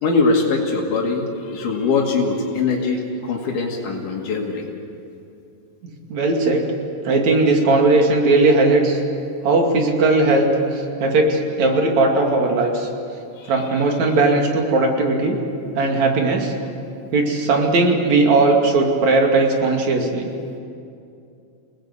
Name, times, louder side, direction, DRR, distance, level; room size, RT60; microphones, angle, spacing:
voice 1, 0.0-4.6 13.4-13.5, left 4 dB, 85° left, -1 dB, 3.9 m, -22 dB
voice 2, 6.1-6.7 7.1-9.0 9.4-10.5 10.7-12.9 13.5-15.4 15.8-16.5 17.1-20.3, right 2 dB, 65° right, 2 dB, 3.7 m, -18 dB
28.5 x 19.0 x 8.2 m, 2.5 s
omnidirectional pair, 3.6 m